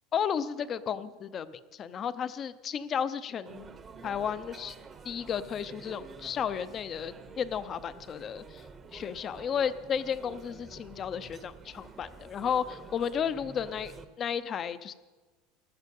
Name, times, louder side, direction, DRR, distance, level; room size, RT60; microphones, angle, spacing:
voice 1, 0.1-3.7 4.0-4.7 5.0-8.6 8.9-14.9, left 7 dB, 35° left, 14 dB, 0.7 m, -33 dB
sound 1, 3.5-14.0, right 5 dB, 25° right, 0.9 m, -49 dB
15.5 x 11.5 x 5.5 m, 1.3 s
supercardioid pair, 130°, 0 cm